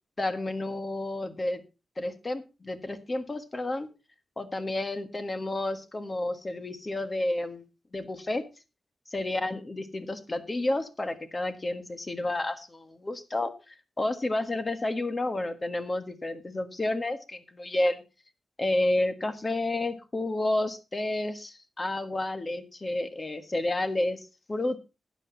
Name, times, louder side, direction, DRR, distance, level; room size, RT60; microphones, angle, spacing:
voice 1, 0.2-1.6 2.0-3.9 4.4-7.6 7.9-8.4 9.1-18.0 18.6-24.8, left 2 dB, 25° left, 9 dB, 1.5 m, -30 dB
12.0 x 9.7 x 4.0 m, 0.29 s
wide cardioid pair, 125°, 0 cm